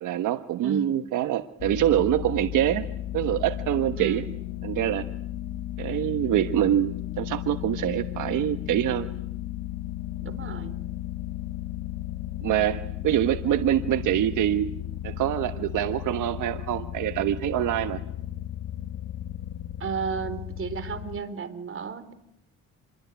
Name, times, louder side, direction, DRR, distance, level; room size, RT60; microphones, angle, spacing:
voice 1, 0.0-2.9 3.1-4.2 4.6-5.1 5.8-9.1 12.4-14.7 15.0-18.0, right 12 dB, 85° right, 9 dB, 1.3 m, -25 dB
voice 2, 0.6-1.0 4.0-4.3 10.2-10.8 19.8-22.1, right 6 dB, 45° right, 12 dB, 4.1 m, -33 dB
sound 1, 1.6-21.2, left 13 dB, 75° left, 1.2 m, -35 dB
28.0 x 22.5 x 9.4 m, 0.79 s
cardioid pair, 90°, 30 cm